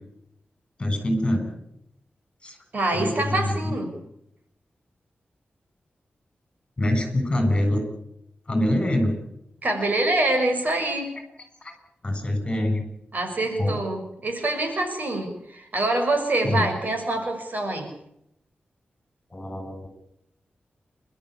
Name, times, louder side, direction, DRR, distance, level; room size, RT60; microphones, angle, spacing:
voice 1, 0.8-1.5 2.4-2.6 2.9-3.8 6.8-7.8 8.5-9.1 11.6-11.7 12.0-12.8 13.6-13.8 16.4-16.7 19.3-19.9, left 1 dB, 25° left, 6 dB, 7.8 m, -24 dB
voice 2, 2.7-3.9 9.6-11.1 13.1-17.9, right 2 dB, 50° right, 4 dB, 6.3 m, -25 dB
28.5 x 13.5 x 9.9 m, 0.77 s
wide cardioid pair, 130°, 4 cm